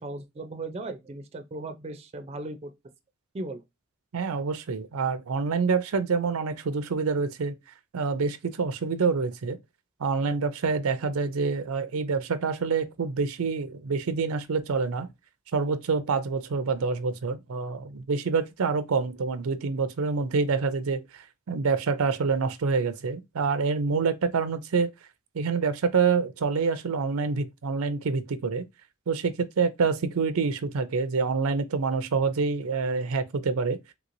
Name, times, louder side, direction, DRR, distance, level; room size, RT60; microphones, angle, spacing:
voice 1, 0.0-2.7 3.3-3.6, right 2 dB, 30° right, 0.4 m, -37 dB
voice 2, 4.1-7.6 7.9-9.6 10.0-15.1 15.5-24.9 25.3-28.7 29.1-33.8, right 5 dB, 90° right, 0.5 m, -27 dB
3.3 x 2.9 x 2.5 m
head